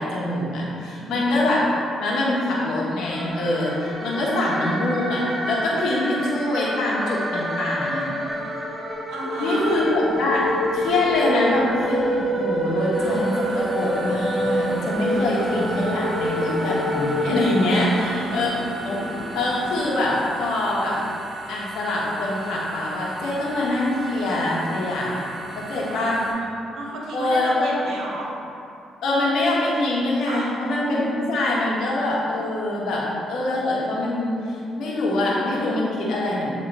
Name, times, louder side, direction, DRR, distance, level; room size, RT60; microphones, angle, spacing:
voice 1, 0.0-1.7 2.0-8.1 9.4-10.5 10.7-18.5 18.8-19.0 19.3-21.0 21.5-25.3 25.5-26.2 27.1-27.7 29.0-36.5, left 1 dB, 75° left, -5 dB, 1.4 m, -24 dB
voice 2, 1.0-1.4 4.0-4.3 8.1-8.2 9.1-9.9 15.1-15.4 17.8-18.6 25.8-28.3 30.2-30.5, right 2 dB, 75° right, -2 dB, 1.1 m, -34 dB
sound 1, 3.1-18.3, equal, 15° right, 1.3 m, -27 dB
sound 2, 9.5-19.8, equal, 25° left, 1.1 m, -36 dB
sound 3, 12.9-26.3, right 2 dB, 60° right, 1.3 m, -36 dB
8.4 x 3.6 x 3.4 m, 2.6 s
cardioid pair, 90°, 0 cm